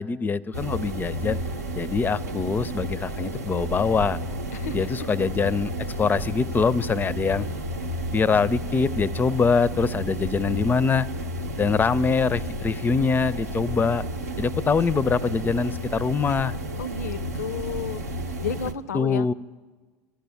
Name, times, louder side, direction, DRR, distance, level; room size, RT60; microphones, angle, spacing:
voice 1, 0.0-1.4 1.7-4.2 4.7-5.7 6.0-7.5 8.1-11.1 11.6-14.0 14.4-16.5 18.9-19.3, left 5 dB, 20° left, 20 dB, 0.4 m, -23 dB
sound 1, 0.5-18.7, right 1 dB, 90° right, 0.7 m, -32 dB
voice 2, 4.5-4.9 16.8-18.0 18.4-19.3, left 6 dB, 85° left, 17 dB, 0.5 m, -32 dB
13.0 x 11.5 x 7.0 m, 1.4 s
hypercardioid pair, 75°, 8 cm